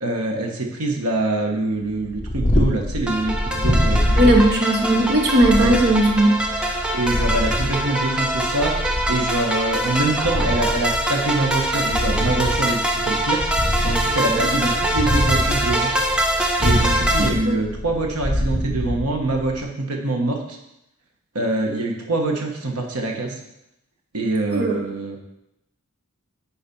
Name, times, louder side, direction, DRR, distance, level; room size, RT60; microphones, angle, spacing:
voice 1, 0.0-4.3 5.6-5.7 6.9-8.8 9.1-13.4 13.8-15.9 16.6-20.6 21.3-23.3 24.1-25.2, right 2 dB, 80° right, 2 dB, 1.3 m, -24 dB
Purr, 1.9-19.6, equal, 35° left, 1.2 m, -25 dB
sound 1, 3.1-17.3, right 1 dB, 5° right, 0.7 m, -24 dB
voice 2, 4.2-6.4 14.3-14.5 17.2-17.6 24.5-24.8, right 1 dB, 50° right, 2 dB, 1.1 m, -18 dB
8.9 x 4.2 x 5.4 m, 0.84 s
head